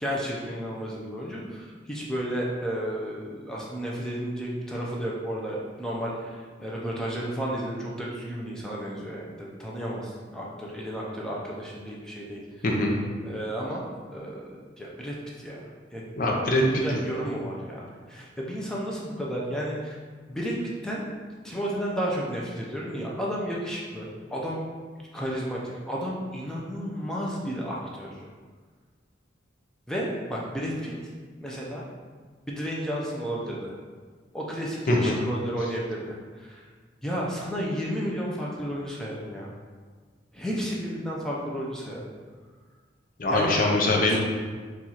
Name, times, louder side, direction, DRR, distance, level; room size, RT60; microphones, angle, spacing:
voice 1, 0.0-12.4 13.2-16.2 16.6-20.0 20.3-20.5 20.8-21.1 21.4-24.6 25.1-28.2 29.9-31.1 31.4-31.8 32.5-33.7 34.3-36.6 37.0-39.5 40.3-42.0 43.3-43.6 44.1-44.2, equal, 5° left, -4 dB, 0.5 m, -32 dB
voice 2, 12.6-13.0 16.2-16.6 34.9-35.2 43.2-44.2, left 2 dB, 45° left, -1 dB, 0.6 m, -23 dB
4.3 x 2.4 x 4.1 m, 1.5 s
head